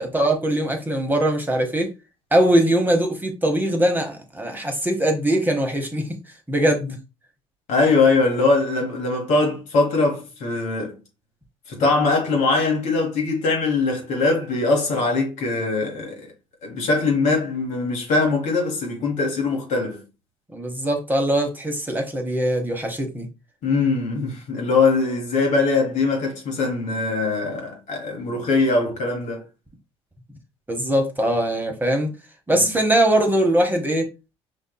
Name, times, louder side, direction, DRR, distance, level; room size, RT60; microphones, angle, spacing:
voice 1, 0.0-1.9 2.3-6.1 6.5-7.0 20.5-23.3 30.7-32.1 32.5-34.1, right 1 dB, 15° right, 1.0 m, -21 dB
voice 2, 7.7-11.0 11.7-16.3 16.6-20.0 23.6-29.4 32.5-32.7, left 3 dB, 65° left, 1.3 m, -22 dB
5.2 x 2.6 x 2.2 m
hypercardioid pair, 60°, 14 cm